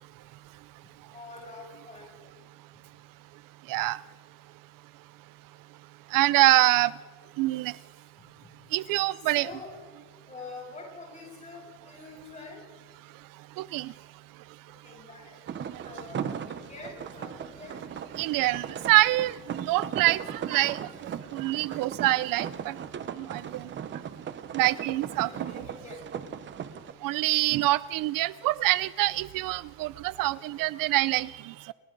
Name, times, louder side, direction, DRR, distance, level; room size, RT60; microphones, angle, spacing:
voice 1, 1.1-2.1 9.3-9.7 10.3-12.6 14.8-15.3 15.8-17.8 25.2-26.0, left 3 dB, 20° left, -2 dB, 7.9 m, -45 dB
voice 2, 6.1-6.9 7.4-7.7 8.7-9.5 13.6-13.9 18.2-20.8 21.3-22.7 23.3-23.6 24.5-25.6 27.0-31.3, right 17 dB, 65° right, 19 dB, 0.5 m, -25 dB
sound 1, 15.5-26.9, right 8 dB, 35° right, 0.9 m, -38 dB
29.0 x 23.0 x 3.9 m, 1.5 s
cardioid pair, 170°, 35 cm